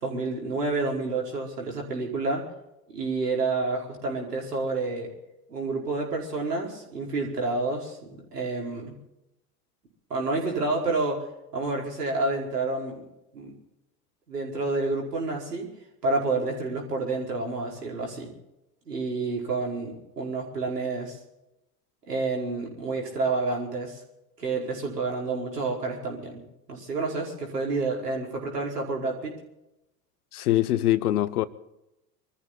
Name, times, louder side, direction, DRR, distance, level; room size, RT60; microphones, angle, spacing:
voice 1, 0.0-2.5 2.9-5.1 5.5-9.0 10.1-11.3 11.5-13.0 13.3-13.5 14.3-15.7 16.0-18.3 18.9-21.2 22.1-24.0 24.4-26.4 26.7-29.3, right 3 dB, 85° right, 4.9 m, -29 dB
voice 2, 30.3-31.5, left 14 dB, 70° left, 1.0 m, -23 dB
24.5 x 14.0 x 4.0 m
figure-of-eight pair, 75°, 46 cm